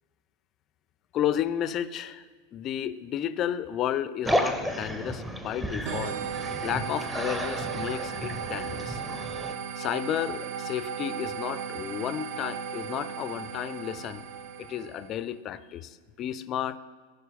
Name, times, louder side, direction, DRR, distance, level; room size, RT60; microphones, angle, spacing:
voice 1, 1.1-2.2 2.5-6.2 6.6-9.0 9.8-14.3 14.6-16.8, left 10 dB, 30° left, 14 dB, 0.4 m, -32 dB
sound 1, 4.2-9.5, equal, 5° right, 0.7 m, -32 dB
sound 2, 5.9-15.2, right 7 dB, 45° right, 0.6 m, -36 dB
15.0 x 5.5 x 3.7 m, 1.4 s
figure-of-eight pair, 90°, 0 cm